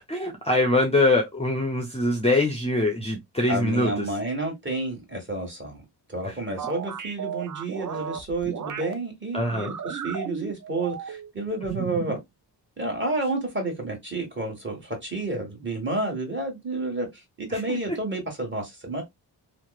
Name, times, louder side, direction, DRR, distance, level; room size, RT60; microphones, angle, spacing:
voice 1, 0.1-4.1 6.2-6.4 9.3-9.7 17.5-18.0, left 2 dB, 15° left, 0.6 m, -24 dB
voice 2, 3.5-5.8 6.1-12.2 12.8-17.1 17.4-19.0, right 2 dB, 25° right, 1.4 m, -30 dB
sound 1, 6.6-8.9 9.4-11.3 11.6-12.2, right 7 dB, 45° right, 0.5 m, -34 dB
2.9 x 2.0 x 2.3 m
cardioid pair, 85°, 43 cm